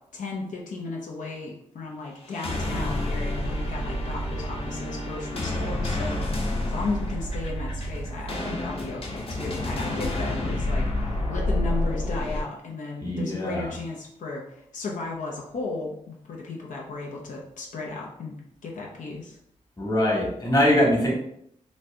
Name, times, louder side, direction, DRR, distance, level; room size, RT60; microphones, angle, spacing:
voice 1, 0.1-6.4 6.6-19.4, left 3 dB, 85° left, -2 dB, 0.7 m, -35 dB
sound 1, 2.2-12.4, left 1 dB, 50° left, 0.9 m, -29 dB
voice 2, 13.0-13.7 19.8-21.1, equal, 30° left, -2 dB, 1.2 m, -22 dB
3.1 x 2.6 x 3.3 m, 0.74 s
cardioid pair, 80°, 13 cm